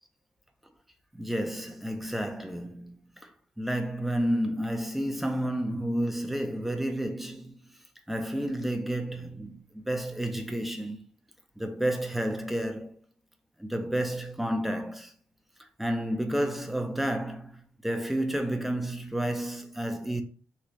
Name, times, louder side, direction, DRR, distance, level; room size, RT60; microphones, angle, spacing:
voice 1, 1.1-3.0 3.6-7.5 8.1-11.0 11.6-13.0 13.6-15.1 15.8-20.2, right 1 dB, 5° right, 0.5 m, -30 dB
3.1 x 3.1 x 2.7 m
cardioid pair, 115°, 5 cm